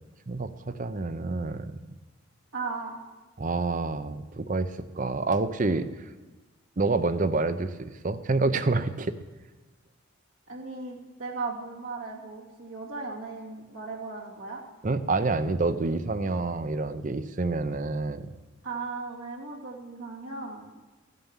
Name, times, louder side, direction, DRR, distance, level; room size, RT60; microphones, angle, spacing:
voice 1, 0.3-1.8 3.4-5.9 6.8-9.2 14.8-18.3, right 3 dB, 40° right, 12 dB, 0.6 m, -28 dB
voice 2, 2.5-3.0 10.5-14.6 18.6-20.7, right 3 dB, 80° right, -3 dB, 2.4 m, -37 dB
14.5 x 9.3 x 7.3 m, 1.3 s
head